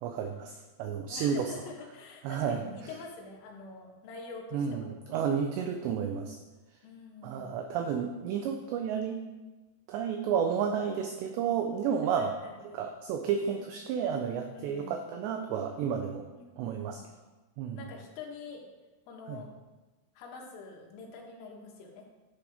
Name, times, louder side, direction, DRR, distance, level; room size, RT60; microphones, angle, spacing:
voice 1, 0.0-1.5 2.2-2.6 4.5-6.4 7.2-9.2 9.9-12.4 12.7-16.3 16.6-17.0 17.6-17.8 19.3-19.4, right 7 dB, 85° right, 4 dB, 2.5 m, -31 dB
voice 2, 1.1-4.9 6.8-7.5 12.2-12.8 14.5-15.0 16.3-17.0 17.8-18.7 19.1-19.5 20.2-22.1, left 4 dB, 85° left, -1 dB, 4.1 m, -46 dB
11.0 x 7.7 x 3.5 m, 1.2 s
omnidirectional pair, 5.7 m